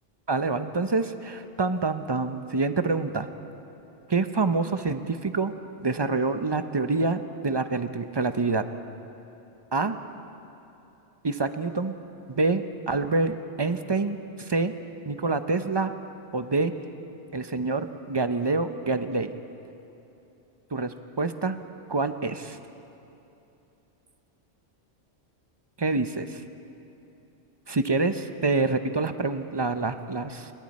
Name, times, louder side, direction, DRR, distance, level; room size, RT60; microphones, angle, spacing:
voice 1, 0.3-3.3 4.1-5.5 5.8-8.7 9.7-10.0 11.2-11.9 12.4-14.7 15.1-15.9 16.3-16.7 17.3-19.3 20.7-21.6 21.9-22.6 25.8-26.4 27.7-30.5, right 3 dB, 30° right, 9 dB, 0.6 m, -26 dB
28.5 x 22.5 x 4.2 m, 2.9 s
omnidirectional pair, 1.2 m